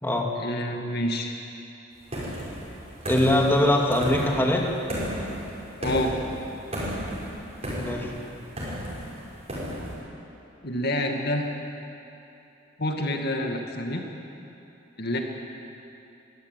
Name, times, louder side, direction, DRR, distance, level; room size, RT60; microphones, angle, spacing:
voice 1, 0.4-1.3 5.8-6.1 10.6-11.4 12.8-14.0 15.0-15.2, left 1 dB, 55° left, 2 dB, 2.0 m, -27 dB
sound 1, 2.1-10.0, equal, 35° right, 6.7 m, -34 dB
voice 2, 3.1-4.7 7.8-8.1, left 1 dB, 10° left, 0 dB, 2.3 m, -22 dB
23.0 x 14.5 x 9.2 m, 3.0 s
head